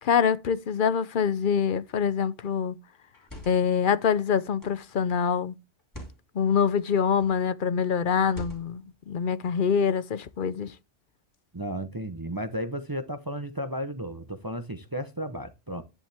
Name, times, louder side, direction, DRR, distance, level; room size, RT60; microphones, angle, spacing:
voice 1, 0.0-2.7 3.5-5.5 6.3-10.7, left 7 dB, 50° left, 0.7 m, -25 dB
sound 1, 1.9-2.2 3.0-3.8 4.6-4.9 5.8-6.2 7.1-7.5 8.3-8.9, right 1 dB, 15° left, 2.9 m, -44 dB
voice 2, 11.5-15.8, equal, 20° right, 0.8 m, -34 dB
10.5 x 10.5 x 3.5 m
omnidirectional pair, 1.2 m